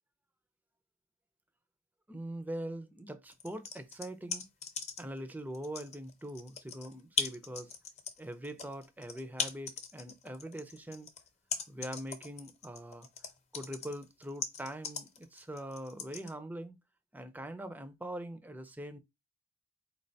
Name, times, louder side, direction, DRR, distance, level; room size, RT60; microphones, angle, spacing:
voice 1, 2.1-4.5 5.0-7.7 8.2-11.1 11.7-13.1 13.5-16.8 17.1-19.0, right 1 dB, 10° right, 0.4 m, -42 dB
sound 1, 3.3-5.2 5.5-16.3, left 6 dB, 30° left, 0.6 m, -39 dB
4.6 x 3.2 x 2.6 m
head